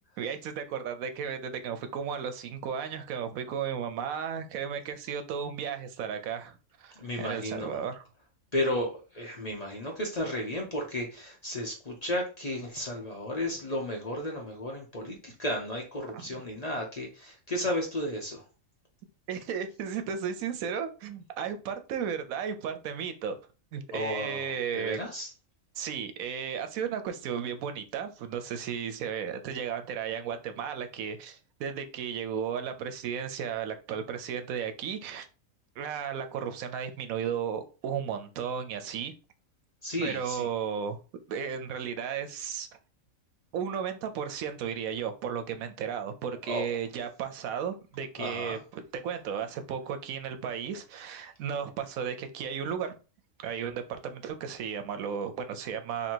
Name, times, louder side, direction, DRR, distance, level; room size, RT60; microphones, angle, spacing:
voice 1, 0.2-8.0 16.1-16.4 19.3-23.4 23.7-25.0 25.8-35.3 35.8-39.1 40.0-41.0 41.3-42.7 43.5-52.9 53.4-56.1, right 7 dB, 85° right, 1.1 m, -34 dB
voice 2, 7.0-7.8 8.5-18.4 23.9-25.3 39.8-40.5 46.5-46.7 48.2-48.6, left 1 dB, 40° left, 0.7 m, -33 dB
2.9 x 2.8 x 4.3 m
omnidirectional pair, 1.4 m